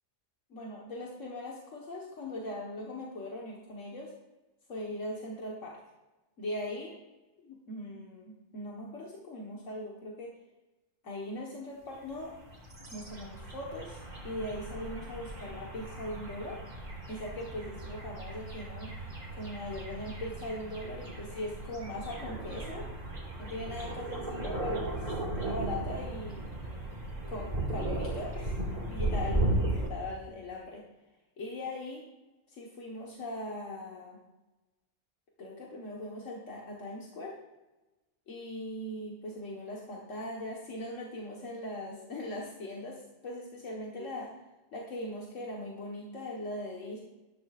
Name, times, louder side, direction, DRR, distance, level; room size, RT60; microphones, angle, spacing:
voice 1, 0.5-4.1 4.7-5.8 6.4-7.0 7.4-10.3 11.0-12.3 12.9-16.6 17.1-19.0 19.3-22.9 23.4-26.4 27.3-28.5 28.9-30.8 31.4-32.0 32.5-34.2 35.4-37.3 38.3-44.3 44.7-47.0, left 1 dB, 80° left, -2 dB, 1.8 m, -40 dB
sound 1, 12.1-29.9, right 1 dB, 35° right, 2.4 m, -36 dB
12.5 x 11.5 x 2.5 m, 1.1 s
omnidirectional pair, 1.3 m